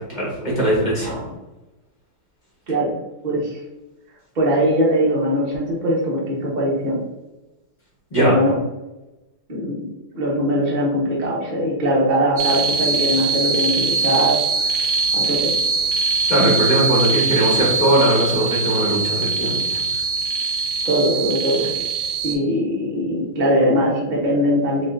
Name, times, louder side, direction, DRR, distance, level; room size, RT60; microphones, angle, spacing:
voice 1, 0.0-1.1 8.1-8.3 16.3-19.8, right 1 dB, 30° left, -6 dB, 0.9 m, -20 dB
voice 2, 1.0-1.3 2.7-3.0 3.2-3.6 4.3-7.0 8.2-8.6 9.5-9.8 10.1-14.4 15.1-15.5 16.4-16.5 20.8-21.7 22.2-24.9, equal, 40° right, -4 dB, 0.6 m, -21 dB
sound 1, 12.4-22.4, right 4 dB, 75° right, 0.9 m, -22 dB
5.2 x 2.4 x 2.5 m, 1.0 s
omnidirectional pair, 2.3 m